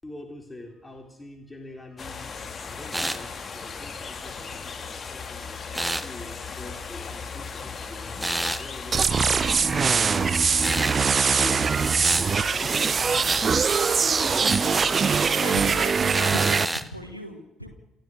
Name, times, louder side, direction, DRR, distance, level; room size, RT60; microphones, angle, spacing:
voice 1, 0.0-5.5 5.9-9.3 9.8-10.9 11.3-12.4 12.7-13.7 14.1-15.2, left 1 dB, 15° left, 3 dB, 3.8 m, -44 dB
sound 1, 2.0-15.4, left 5 dB, 35° left, 1.9 m, -37 dB
sound 2, 2.9-3.2 5.7-6.1 8.2-8.6 10.6-11.0 12.0-12.3 13.3-13.5 14.4-14.7 16.1-16.9, right 1 dB, 5° right, 1.2 m, -29 dB
sound 3, 8.9-16.7, right 5 dB, 35° right, 0.7 m, -22 dB
voice 2, 15.4-17.7, equal, 90° left, 5 dB, 1.7 m, -37 dB
28.5 x 14.0 x 6.5 m, 0.91 s
figure-of-eight pair, 50°, 0 cm